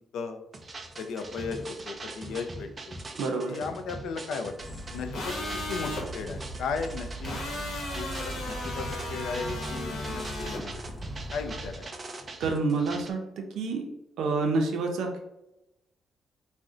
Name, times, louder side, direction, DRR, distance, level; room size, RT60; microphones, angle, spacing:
sound 1, 0.5-13.1, right 2 dB, 25° right, 0.3 m, -42 dB
voice 1, 1.0-3.0 3.5-4.5 4.9-7.4 7.9-10.8 11.3-11.9, left 5 dB, 85° left, 6 dB, 0.3 m, -36 dB
voice 2, 3.2-3.6 12.4-13.9 14.2-15.2, right 3 dB, 90° right, 3 dB, 0.5 m, -28 dB
sound 2, 4.6-11.8, right 1 dB, 10° left, 0.7 m, -40 dB
sound 3, 5.1-6.0 7.2-10.6, left 1 dB, 55° left, 0.8 m, -35 dB
2.5 x 2.1 x 3.6 m, 0.89 s
cardioid pair, 160°, 0 cm